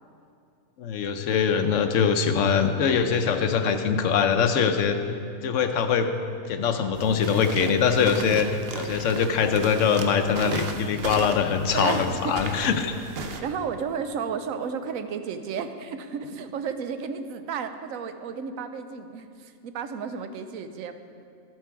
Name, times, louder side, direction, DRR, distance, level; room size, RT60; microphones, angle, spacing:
voice 1, 0.8-5.0 5.4-6.1 6.5-8.5 8.7-13.0, left 6 dB, 70° left, 8 dB, 1.0 m, -23 dB
sound 1, 6.9-13.4, right 4 dB, 55° right, 0.8 m, -36 dB
voice 2, 11.7-12.4 13.4-20.9, right 6 dB, 80° right, 9 dB, 1.1 m, -33 dB
13.0 x 7.6 x 4.7 m, 2.4 s
omnidirectional pair, 1.4 m